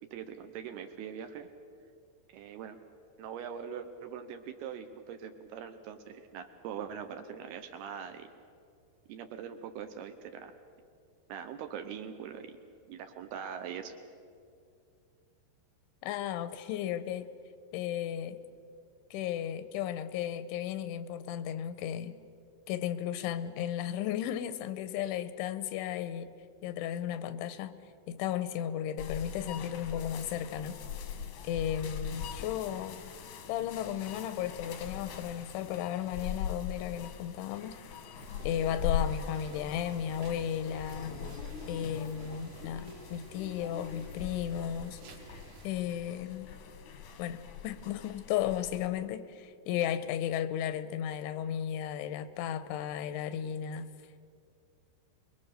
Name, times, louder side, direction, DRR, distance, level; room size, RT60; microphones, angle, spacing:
voice 1, 0.0-1.5 2.3-2.8 3.2-8.3 9.1-10.6 11.3-12.6 12.9-13.9, right 8 dB, 75° right, 7 dB, 2.6 m, -42 dB
voice 2, 16.0-17.3 17.7-18.4 19.1-22.2 22.7-26.3 26.6-27.7 28.1-30.8 31.4-33.0 33.5-37.8 38.4-41.2 41.7-45.0 45.6-46.5 47.2-53.9, left 10 dB, 85° left, 13 dB, 3.2 m, -34 dB
sound 1, 29.0-48.9, left 8 dB, 65° left, 1.9 m, -41 dB
sound 2, 38.2-45.7, right 4 dB, 55° right, 3.5 m, -52 dB
24.5 x 22.0 x 6.6 m, 2.4 s
omnidirectional pair, 5.3 m